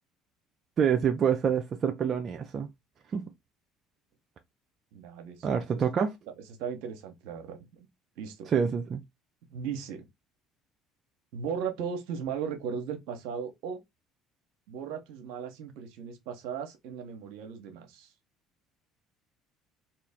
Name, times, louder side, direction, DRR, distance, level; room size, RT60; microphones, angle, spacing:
voice 1, 0.8-2.7 3.1-3.2 5.4-6.1 8.5-9.0, right 7 dB, 45° right, 0.5 m, -26 dB
voice 2, 4.9-5.8 6.6-7.9 8.2-8.5 9.5-10.1 11.3-13.8 14.7-18.1, right 7 dB, 75° right, 0.9 m, -37 dB
3.0 x 2.8 x 3.6 m
hypercardioid pair, 70°, 0 cm